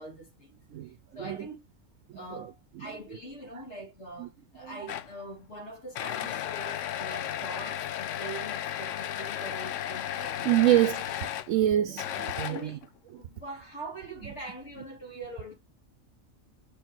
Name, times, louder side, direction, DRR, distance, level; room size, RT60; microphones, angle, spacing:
voice 1, 0.0-1.6 2.1-10.8 12.4-12.8 13.1-15.6, right 2 dB, 60° left, 2.6 m, -43 dB
voice 2, 2.1-3.0 4.2-4.3 4.6-4.8 10.4-11.0 11.5-12.8, right 13 dB, 80° right, 1.0 m, -27 dB
sound 1, 4.9-5.2 5.9-11.5 12.0-12.8, left 11 dB, 75° left, 0.9 m, -34 dB
5.7 x 4.5 x 3.7 m
omnidirectional pair, 1.4 m